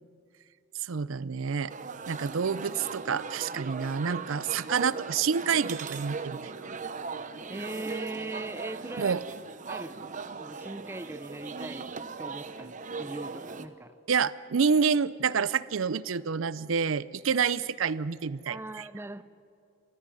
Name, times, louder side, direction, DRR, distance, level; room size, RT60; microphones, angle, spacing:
voice 1, 0.8-1.7 2.1-6.5 9.0-9.2 14.1-18.9, right 6 dB, 65° right, 18 dB, 0.5 m, -28 dB
sound 1, 1.7-13.7, right 4 dB, 35° right, 0.8 m, -39 dB
voice 2, 7.5-9.2 9.7-14.0 18.5-19.2, right 2 dB, 10° right, 12 dB, 0.5 m, -40 dB
28.5 x 14.5 x 9.9 m, 2.5 s
head